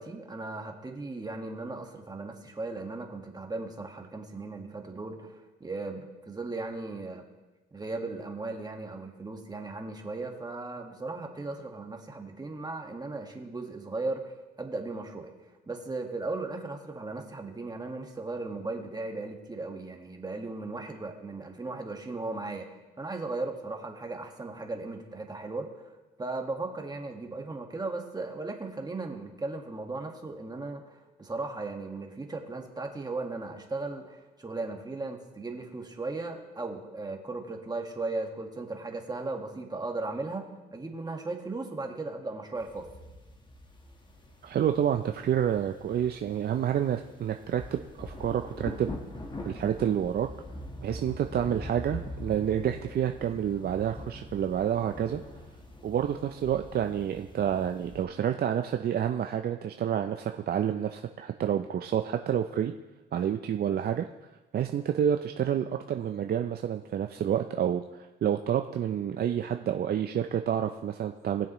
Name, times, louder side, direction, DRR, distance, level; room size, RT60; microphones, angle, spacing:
voice 1, 0.0-7.2 7.7-14.3 14.6-15.3 15.7-22.7 23.0-25.7 26.2-42.9, right 3 dB, 20° right, 3 dB, 1.6 m, -37 dB
sound 1, 42.6-58.0, left 1 dB, 25° left, 1.4 m, -43 dB
voice 2, 44.4-48.9 49.5-50.3 50.8-55.2 55.8-62.7 63.1-64.1 64.5-67.8 68.2-71.5, right 9 dB, 50° right, 6 dB, 0.5 m, -29 dB
19.5 x 7.1 x 3.1 m, 1.1 s
cardioid pair, 90°, 20 cm